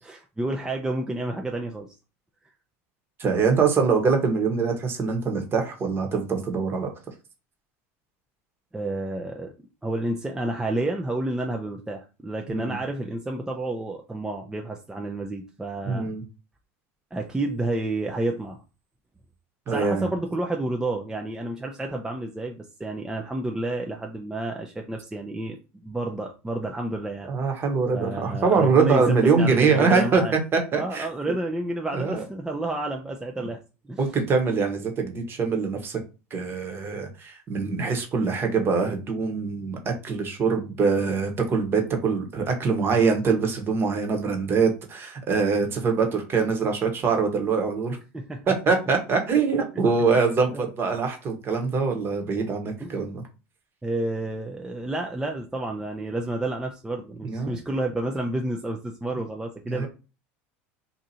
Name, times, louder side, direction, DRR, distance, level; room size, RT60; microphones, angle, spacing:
voice 1, 0.0-2.0 8.7-9.5 9.8-16.1 17.1-18.6 19.7-25.6 25.8-27.3 27.9-30.4 30.7-33.6 33.9-34.0 48.1-48.4 50.5-50.6 52.8-53.1 53.8-59.9, right 2 dB, 10° right, 2 dB, 0.5 m, -30 dB
voice 2, 3.2-6.9 12.5-12.8 15.8-16.2 19.7-20.1 27.3-31.1 31.9-32.2 34.0-36.0 36.3-48.0 48.5-53.2 57.2-57.5 59.7-59.9, right 5 dB, 35° right, 4 dB, 1.1 m, -23 dB
2.7 x 2.4 x 4.2 m, 0.31 s
supercardioid pair, 105°, 7 cm